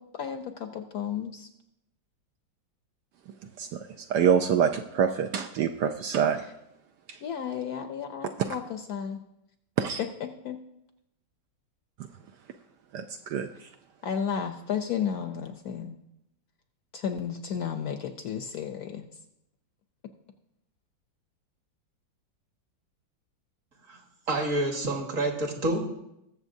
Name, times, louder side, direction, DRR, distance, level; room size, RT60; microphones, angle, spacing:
voice 1, 0.0-1.5 6.4-6.5 7.2-9.2 10.0-10.6 14.0-16.0 16.9-19.1, left 7 dB, 70° left, 1.0 m, -33 dB
voice 2, 4.1-6.4 9.8-10.0 12.9-13.5, right 7 dB, 75° right, 1.1 m, -25 dB
voice 3, 24.3-25.9, right 2 dB, 45° right, 1.7 m, -28 dB
20.5 x 7.0 x 2.7 m
omnidirectional pair, 2.1 m